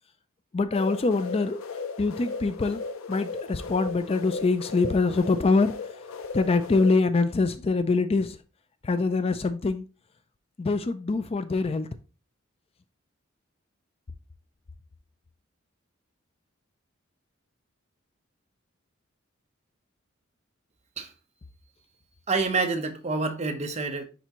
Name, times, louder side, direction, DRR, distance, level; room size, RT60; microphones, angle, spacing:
voice 1, 0.5-1.6 2.0-5.7 6.3-8.4 8.8-9.9 10.6-11.9, left 3 dB, 30° left, 0.4 m, -24 dB
sound 1, 0.7-6.9, left 4 dB, 85° left, 0.6 m, -36 dB
voice 2, 22.3-24.0, right 3 dB, 35° right, 0.9 m, -27 dB
10.0 x 3.5 x 3.0 m
head